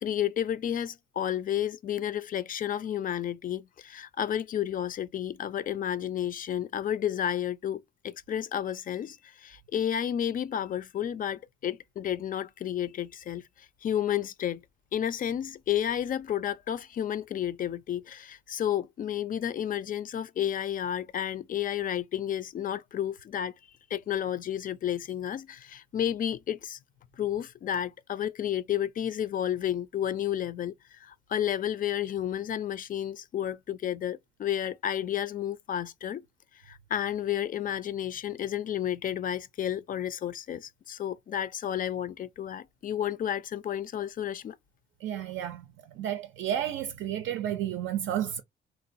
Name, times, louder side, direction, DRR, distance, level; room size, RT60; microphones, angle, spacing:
voice 1, 0.0-14.6 14.9-23.5 23.9-26.8 27.2-36.2 36.6-44.6, left 10 dB, 45° left, 0.4 m, -31 dB
voice 2, 45.0-45.7 46.0-48.4, right 10 dB, 75° right, 0.4 m, -31 dB
3.0 x 2.1 x 2.5 m
cardioid pair, 90°, 20 cm